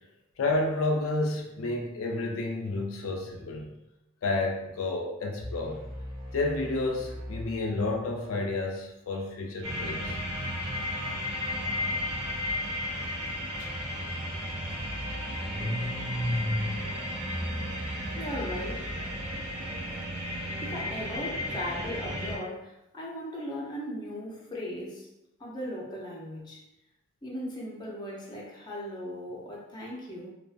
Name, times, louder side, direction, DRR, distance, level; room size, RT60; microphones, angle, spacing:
voice 1, 0.4-3.8 4.2-5.8 6.3-10.2, left 2 dB, 80° left, 1 dB, 0.4 m, -30 dB
sound 1, 5.4-8.3, equal, 5° right, 0.9 m, -41 dB
sound 2, 9.6-22.4, left 1 dB, 85° right, 0.7 m, -34 dB
Car / Engine starting, 13.6-13.7 14.0-19.2, equal, 40° right, 1.0 m, -35 dB
voice 2, 18.2-18.9 20.6-25.1 25.4-26.6 27.2-30.3, equal, 20° left, -4 dB, 0.5 m, -37 dB
2.4 x 2.3 x 2.4 m, 0.90 s
head